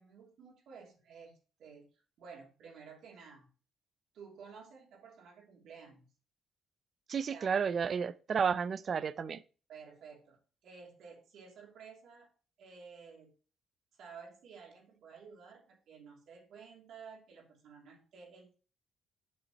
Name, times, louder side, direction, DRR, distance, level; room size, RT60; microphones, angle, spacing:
voice 1, 0.0-3.5 4.1-6.1 7.3-7.6 9.7-12.3 12.6-13.3 14.0-18.6, right 5 dB, 75° right, 2.8 m, -53 dB
voice 2, 7.1-9.4, right 6 dB, 50° right, 0.5 m, -32 dB
7.9 x 7.0 x 3.0 m
cardioid pair, 90°, 0 cm